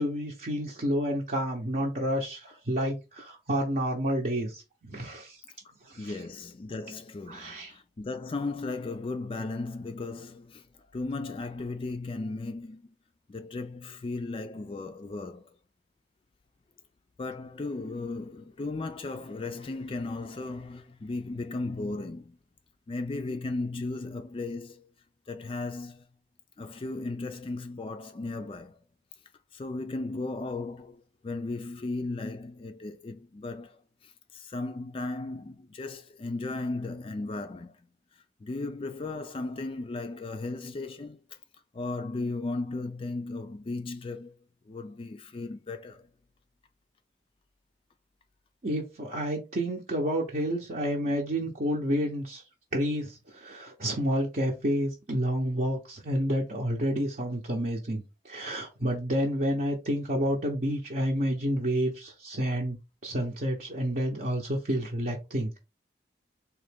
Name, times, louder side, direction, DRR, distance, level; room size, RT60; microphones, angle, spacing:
voice 1, 0.0-5.4 5.8-6.2 7.3-7.7 48.6-52.4 52.7-62.8 63.0-65.6, equal, 50° right, 0.8 m, -29 dB
voice 2, 6.0-10.6 10.9-12.9 13.3-15.5 17.2-22.4 22.9-24.9 25.3-26.0 26.6-28.8 29.5-37.7 38.4-41.2 41.7-44.4 44.7-46.0, left 3 dB, 30° left, 0.3 m, -36 dB
3.7 x 2.9 x 3.4 m
head